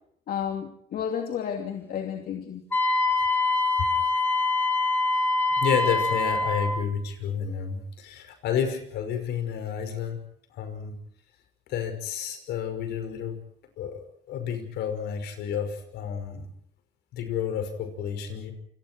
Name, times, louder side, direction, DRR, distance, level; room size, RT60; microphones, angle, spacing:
voice 1, 0.3-2.6, left 8 dB, 60° left, 4 dB, 2.8 m, -32 dB
Wind instrument woodwind instrument, 2.7-6.8, left 2 dB, 10° left, 3.9 m, -24 dB
voice 2, 5.6-10.2 10.5-11.0 11.7-13.4 13.8-16.5 17.1-18.5, left 7 dB, 80° left, 8 dB, 5.8 m, -30 dB
29.0 x 27.0 x 4.7 m, 0.67 s
cardioid pair, 110°, 17 cm